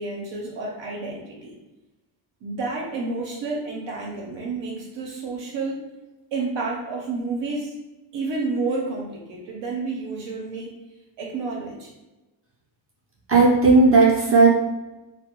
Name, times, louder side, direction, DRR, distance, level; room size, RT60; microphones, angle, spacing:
voice 1, 0.0-1.5 2.4-5.8 6.3-7.7 8.1-10.7 11.2-11.9, right 3 dB, 70° right, -2 dB, 0.7 m, -30 dB
voice 2, 13.3-14.5, right 3 dB, 30° right, -5 dB, 0.5 m, -15 dB
2.2 x 2.1 x 2.8 m, 1.1 s
cardioid pair, 130°, 44 cm